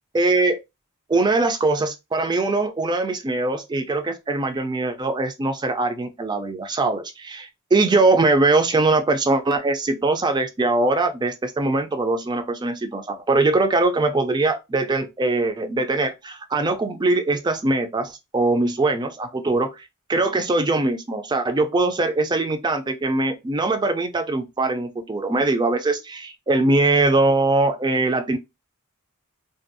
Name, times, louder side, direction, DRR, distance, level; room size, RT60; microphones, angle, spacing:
voice 1, 0.1-0.6 1.1-28.4, right 2 dB, 20° right, 0.3 m, -22 dB
2.5 x 2.3 x 2.6 m
head